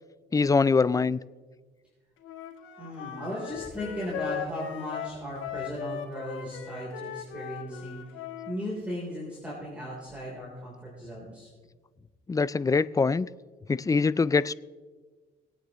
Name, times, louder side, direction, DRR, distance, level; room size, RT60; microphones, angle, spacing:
voice 1, 0.3-1.2 12.3-13.3 13.7-14.5, left 4 dB, 15° left, 18 dB, 0.3 m, -23 dB
Wind instrument woodwind instrument, 2.2-8.6, left 9 dB, 85° left, 1.4 m, -38 dB
voice 2, 2.8-8.2 8.5-11.5, equal, 5° right, -6 dB, 3.9 m, -37 dB
22.0 x 9.1 x 3.1 m, 1.4 s
cardioid pair, 90°, 20 cm